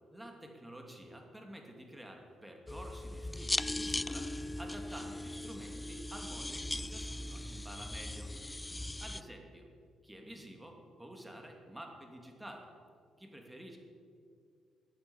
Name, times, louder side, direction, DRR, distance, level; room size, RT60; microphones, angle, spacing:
voice 1, 0.1-8.3 9.0-9.7 10.0-12.7 13.2-13.8, equal, 10° right, 2 dB, 2.6 m, -50 dB
sound 1, 2.7-9.2, left 1 dB, 15° left, 0.3 m, -39 dB
13.0 x 9.2 x 8.2 m, 2.2 s
cardioid pair, 90°, 0 cm